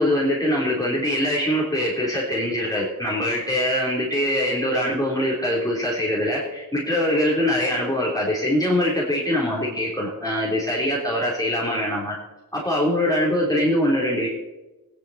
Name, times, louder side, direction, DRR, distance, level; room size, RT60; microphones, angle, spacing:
voice 1, 0.0-12.2 12.5-14.3, left 1 dB, 10° left, -5 dB, 3.5 m, -23 dB
16.5 x 10.5 x 4.2 m, 1.1 s
cardioid pair, 45°, 37 cm